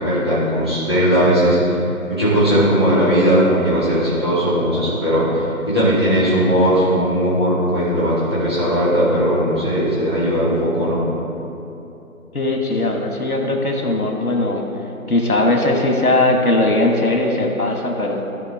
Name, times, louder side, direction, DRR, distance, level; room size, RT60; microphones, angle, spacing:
voice 1, 0.0-1.8 2.1-11.0, equal, 20° right, -12 dB, 1.7 m, -18 dB
voice 2, 12.3-14.6 15.1-18.3, left 2 dB, 85° left, 2 dB, 1.5 m, -19 dB
14.0 x 5.3 x 3.4 m, 2.8 s
figure-of-eight pair, 170°, 43 cm